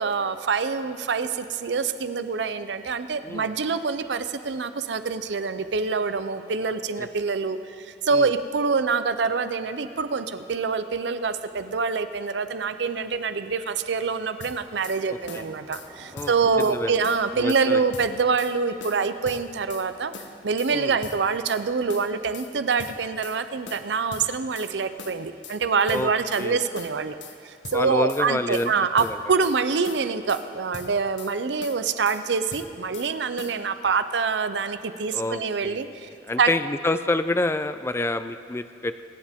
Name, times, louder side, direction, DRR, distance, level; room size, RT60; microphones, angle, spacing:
voice 1, 0.0-20.1 20.4-27.2 27.4-36.1 36.4-36.5, right 5 dB, 75° right, 11 dB, 0.6 m, -25 dB
Car passing by / Engine, 12.0-21.8, right 1 dB, 30° right, 2.0 m, -53 dB
sound 1, 14.4-15.0 15.3-15.9 16.2-16.8 17.0-17.7 17.9-18.5 18.8-19.9 20.1-20.7 21.0-21.6 21.9-22.5 22.8-23.4 23.7-24.7 25.0-25.6 25.9-26.5 26.8-27.4 27.6-28.3 28.5-29.6 29.8-30.5 30.7-31.3 31.6-32.2 32.5-33.1 33.4-33.6, left 5 dB, 85° left, 1.0 m, -41 dB
voice 2, 15.1-15.5 16.1-16.3 16.6-17.0 17.3-17.8 20.7-21.0 25.9-26.1 26.4-26.6 27.7-28.7 29.0-29.2 35.1-39.0, left 2 dB, 15° left, 11 dB, 0.4 m, -28 dB
24.5 x 9.7 x 3.6 m, 2.7 s
head